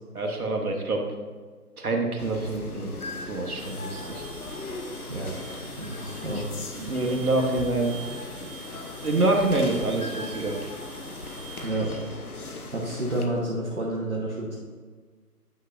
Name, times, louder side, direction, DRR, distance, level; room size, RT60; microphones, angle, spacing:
voice 1, 0.1-1.0 1.8-2.9 3.3-4.2 6.8-8.0 8.4-8.5 9.0-10.6, right 2 dB, 65° right, 1 dB, 1.3 m, -26 dB
sound 1, 2.2-13.3, left 2 dB, 65° left, 1.0 m, -38 dB
sound 2, 3.6-12.8, right 3 dB, ahead, 0.9 m, -45 dB
voice 2, 5.8-6.6 11.6-11.9 12.7-14.6, right 1 dB, 45° right, -5 dB, 1.0 m, -30 dB
9.4 x 5.7 x 2.5 m, 1.5 s
figure-of-eight pair, 170°, 47 cm